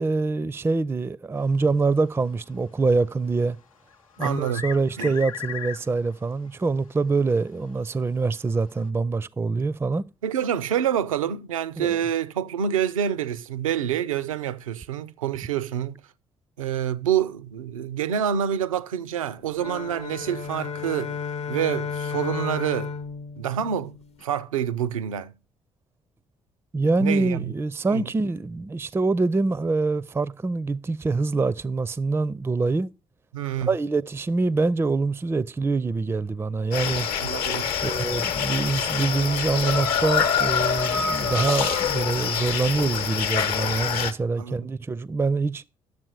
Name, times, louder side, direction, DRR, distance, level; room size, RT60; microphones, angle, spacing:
voice 1, 0.0-3.6 4.2-10.1 11.8-12.0 26.7-32.9 33.6-37.1 37.8-45.6, right 3 dB, 15° right, 0.4 m, -25 dB
sound 1, 3.9-6.1 6.5-6.6 7.5-7.6 8.8-8.9, left 8 dB, 85° left, 0.5 m, -36 dB
voice 2, 4.2-4.6 5.0-5.1 10.2-16.0 16.6-21.1 21.5-22.9 23.4-23.9 24.2-25.3 27.0-27.5 27.9-28.1 33.3-33.7 37.2-37.7 44.4-44.5, right 9 dB, 80° right, 0.5 m, -27 dB
sound 2, 19.5-24.2, left 6 dB, 40° left, 0.6 m, -33 dB
sound 3, 36.7-44.1, left 7 dB, 60° left, 0.9 m, -25 dB
11.0 x 7.3 x 4.7 m
figure-of-eight pair, 45°, 17 cm